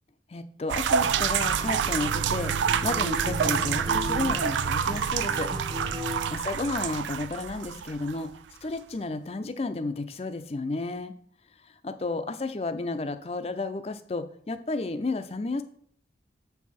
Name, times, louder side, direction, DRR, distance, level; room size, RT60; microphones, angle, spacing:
voice 1, 0.3-2.5 2.8-5.5 6.3-8.3 8.6-11.1 11.8-15.6, left 3 dB, 35° left, 10 dB, 0.4 m, -32 dB
sound 1, 0.7-8.3, right 8 dB, 85° right, 0.3 m, -27 dB
Acoustic guitar, 1.0-6.4, left 1 dB, 25° right, 0.6 m, -36 dB
6.8 x 4.6 x 4.2 m, 0.63 s
head